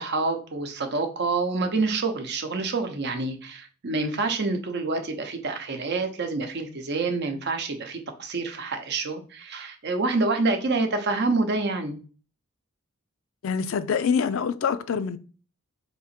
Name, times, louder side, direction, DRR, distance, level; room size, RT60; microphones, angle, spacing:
voice 1, 0.0-12.0, right 3 dB, 55° right, 0.7 m, -27 dB
voice 2, 13.4-15.2, left 6 dB, 65° left, 0.4 m, -25 dB
3.6 x 2.8 x 4.3 m
head